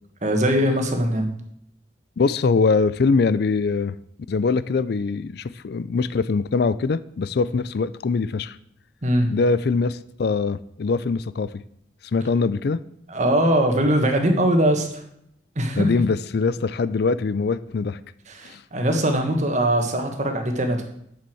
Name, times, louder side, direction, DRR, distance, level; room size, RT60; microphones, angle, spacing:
voice 1, 0.2-1.3 9.0-9.3 13.1-14.9 15.5-16.0 18.3-20.8, right 1 dB, 40° right, 4 dB, 1.6 m, -21 dB
voice 2, 2.2-4.0 4.3-8.6 9.3-11.5 12.1-12.8 15.8-18.0 18.4-18.6, left 4 dB, 60° left, 16 dB, 0.4 m, -22 dB
7.7 x 7.0 x 7.8 m, 0.73 s
head